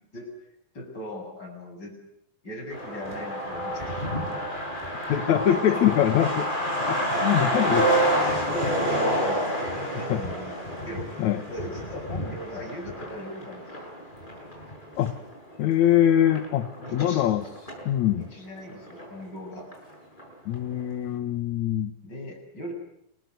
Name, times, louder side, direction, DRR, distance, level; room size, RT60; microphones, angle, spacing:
voice 1, 0.7-1.9 2.4-4.5 5.2-5.9 7.1-7.2 8.3-11.1 11.3-13.9 16.8-17.3 18.1-19.7 22.0-22.7, left 1 dB, 25° left, 2 dB, 8.3 m, -39 dB
Truck, 2.7-17.9 18.2-18.3 18.6-19.4 19.7-19.8 20.2-20.5, right 1 dB, 10° left, 7.3 m, -29 dB
voice 2, 5.1-6.5 6.9-8.0 10.1-10.2 11.2-11.4 15.0-15.1 15.6-17.4 17.9-18.3 20.5-21.9, left 11 dB, 60° left, 10 dB, 2.3 m, -23 dB
29.5 x 21.5 x 8.0 m, 0.76 s
omnidirectional pair, 4.2 m